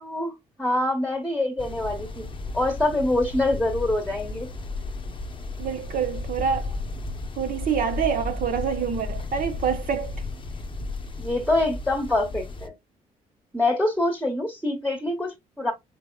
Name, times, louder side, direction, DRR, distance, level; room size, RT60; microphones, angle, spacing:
voice 1, 0.0-2.2 2.5-4.5 11.2-12.7 13.5-15.7, left 2 dB, ahead, 1.2 m, -25 dB
sound 1, 1.6-12.7, left 2 dB, 30° left, 0.7 m, -34 dB
voice 2, 5.6-6.8 7.4-10.1, right 7 dB, 60° right, 0.7 m, -26 dB
4.4 x 3.4 x 2.3 m
cardioid pair, 75°, 16 cm